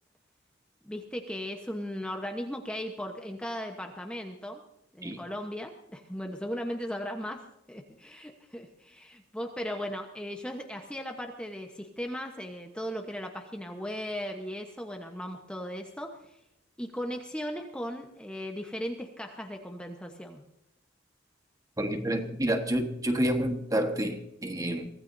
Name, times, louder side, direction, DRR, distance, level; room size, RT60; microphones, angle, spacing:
voice 1, 0.8-4.6 4.9-7.4 7.7-16.3 16.8-20.4, equal, 5° left, 1.0 m, -37 dB
voice 2, 21.8-24.9, right 1 dB, 15° right, 1.4 m, -29 dB
24.0 x 16.5 x 2.7 m
head